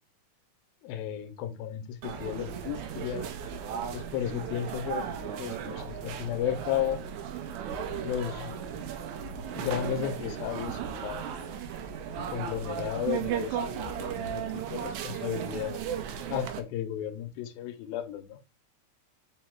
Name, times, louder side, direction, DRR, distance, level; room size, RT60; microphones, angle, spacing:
voice 1, 0.8-3.3 3.9-7.0 8.0-8.6 9.6-11.6 12.1-15.8 16.3-18.4, left 10 dB, 90° left, 2.4 m, -34 dB
sound 1, 2.0-16.6, right 8 dB, 80° right, 1.7 m, -36 dB
5.6 x 2.1 x 4.3 m
omnidirectional pair, 4.0 m